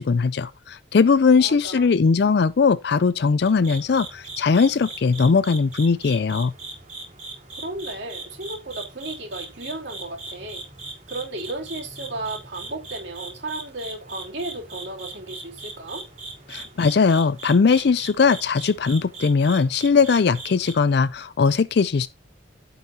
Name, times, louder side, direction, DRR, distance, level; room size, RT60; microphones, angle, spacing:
voice 1, 0.0-6.5 16.5-22.1, left 5 dB, 60° left, 0.4 m, -19 dB
voice 2, 1.4-1.9 7.5-10.7 11.1-16.1, right 2 dB, 65° right, 3.1 m, -34 dB
sound 1, 3.4-20.7, right 3 dB, 35° right, 3.8 m, -39 dB
16.0 x 5.5 x 2.8 m
head